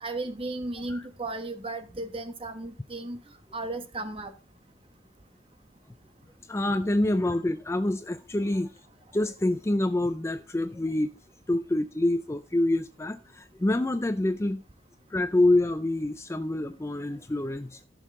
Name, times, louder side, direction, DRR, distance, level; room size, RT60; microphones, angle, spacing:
voice 1, 0.0-3.2 3.5-4.3, right 2 dB, 30° right, 1.2 m, -35 dB
voice 2, 6.5-8.7 9.1-11.1 11.5-14.6 15.1-17.8, left 1 dB, 15° left, 0.4 m, -26 dB
14.5 x 6.4 x 3.7 m
head